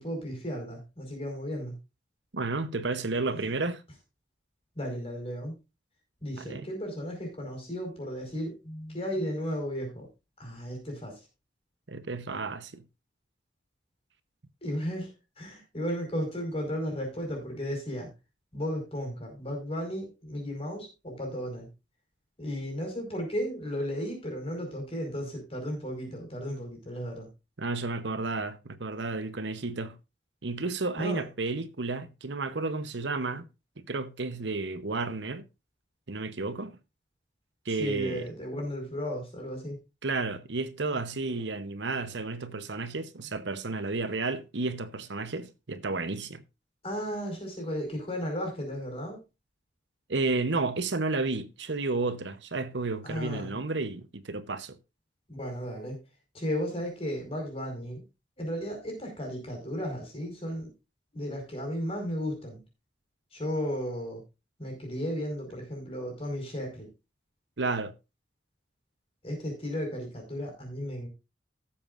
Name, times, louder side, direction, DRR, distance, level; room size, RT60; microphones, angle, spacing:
voice 1, 0.0-1.8 3.4-3.5 4.7-5.5 6.2-10.1 10.4-11.2 14.6-15.1 15.4-18.1 18.5-21.7 22.4-27.3 31.0-31.2 37.7-39.8 46.8-49.2 53.0-53.6 55.3-56.0 56.3-58.0 58.4-60.7 61.1-62.6 63.3-64.2 64.6-66.9 69.2-71.1, equal, 35° left, 4.9 m, -34 dB
voice 2, 2.3-3.8 6.4-6.7 11.9-12.8 27.6-30.0 30.4-33.5 33.8-35.4 36.1-36.8 37.7-38.3 40.0-46.4 50.1-54.7 67.6-67.9, right 3 dB, 85° right, 1.0 m, -32 dB
17.5 x 7.3 x 2.5 m
head